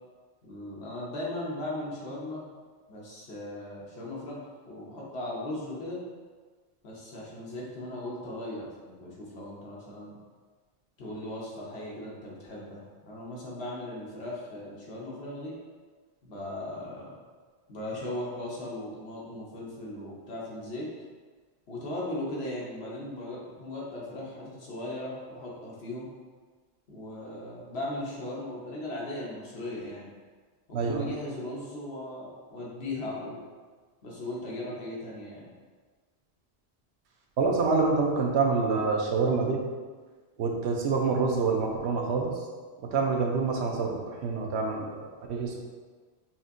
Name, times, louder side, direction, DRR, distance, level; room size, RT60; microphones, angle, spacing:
voice 1, 0.4-2.4 2.9-4.4 4.7-6.0 6.8-10.2 11.0-15.6 16.2-17.2 17.7-20.9 21.7-26.1 26.9-30.1 30.8-33.4 34.0-35.5, left 1 dB, 75° left, -5 dB, 1.1 m, -38 dB
voice 2, 30.7-31.1 37.4-39.6 40.4-42.3 42.8-45.6, right 4 dB, 90° right, 1 dB, 0.9 m, -27 dB
5.6 x 2.6 x 2.5 m, 1.4 s
omnidirectional pair, 1.1 m